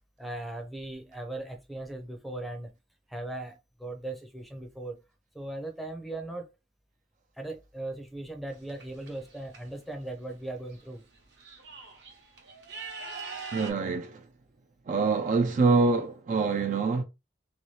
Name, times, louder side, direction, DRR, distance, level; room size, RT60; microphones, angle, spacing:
voice 1, 0.2-2.7 3.1-5.0 5.3-6.5 7.4-11.0, right 2 dB, ahead, 0.6 m, -38 dB
sound 1, 8.5-9.6 10.7-10.8 11.1-13.7, right 4 dB, 65° right, 0.9 m, -42 dB
voice 2, 13.5-14.2 14.9-17.0, right 4 dB, 45° right, 0.3 m, -25 dB
2.8 x 2.6 x 3.1 m
head